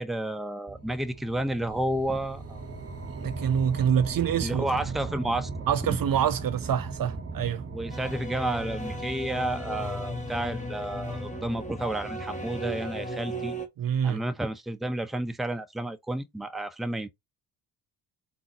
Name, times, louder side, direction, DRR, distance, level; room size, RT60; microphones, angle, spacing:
voice 1, 0.0-2.6 4.4-5.5 5.8-6.0 7.7-13.5 14.0-17.1, right 1 dB, ahead, 0.7 m, -31 dB
sound 1, 0.7-13.2, right 4 dB, 30° right, 1.2 m, -38 dB
voice 2, 3.1-4.7 5.7-7.6 13.8-14.2, right 8 dB, 45° right, 0.6 m, -26 dB
sound 2, 7.9-13.7, equal, 15° left, 1.7 m, -36 dB
4.2 x 3.9 x 2.8 m
hypercardioid pair, 50°, 49 cm